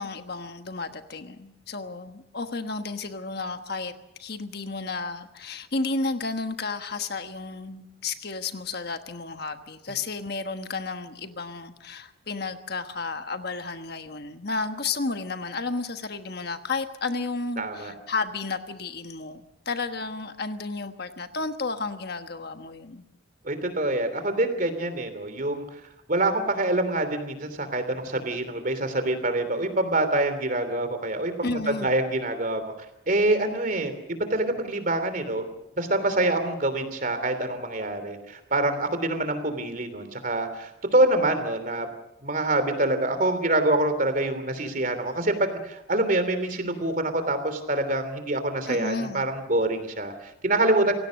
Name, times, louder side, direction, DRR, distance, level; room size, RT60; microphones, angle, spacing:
voice 1, 0.0-3.9 4.2-23.0 31.4-31.9 48.6-49.2, left 3 dB, 50° left, 1.3 m, -32 dB
voice 2, 17.6-17.9 23.4-25.6 26.1-32.7 33.1-35.5 35.8-41.9 42.2-50.9, right 2 dB, 40° right, 3.1 m, -26 dB
27.5 x 17.5 x 6.5 m
head